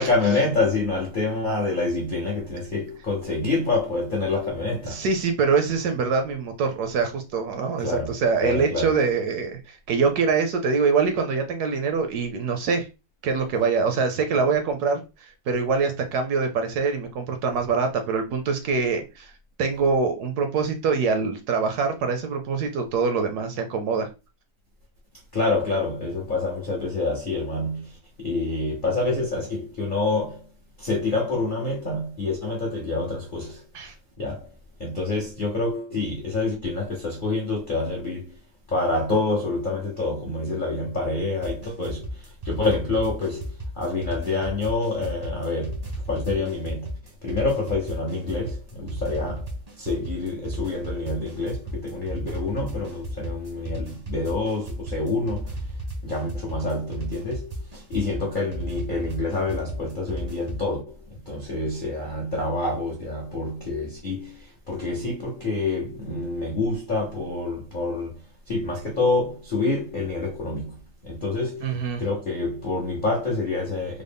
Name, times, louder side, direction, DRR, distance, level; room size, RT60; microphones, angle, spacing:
voice 1, 0.0-5.0 7.8-8.1 8.4-8.9 25.3-30.4 30.8-33.6 34.2-34.5 34.8-38.4 38.7-45.8 46.1-46.9 47.2-49.5 49.8-55.6 56.0-61.0 61.3-68.2 68.5-70.8 71.0-74.0, left 3 dB, 75° left, 0.4 m, -27 dB
voice 2, 4.8-12.9 13.2-19.3 19.6-24.1 33.7-33.9 71.6-72.0, right 5 dB, 70° right, 0.9 m, -24 dB
sound 1, 41.4-60.7, right 1 dB, 40° right, 0.5 m, -34 dB
3.7 x 2.1 x 3.3 m
omnidirectional pair, 2.0 m